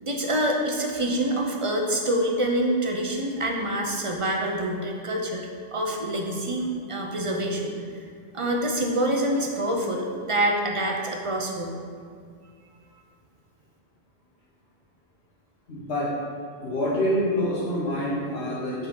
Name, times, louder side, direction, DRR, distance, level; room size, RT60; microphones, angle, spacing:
voice 1, 0.0-8.1 8.3-11.8, right 1 dB, 35° right, 1 dB, 0.6 m, -26 dB
voice 2, 15.7-16.1 16.6-18.9, equal, 80° left, -6 dB, 1.4 m, -26 dB
5.5 x 3.8 x 5.7 m, 2.1 s
omnidirectional pair, 1.1 m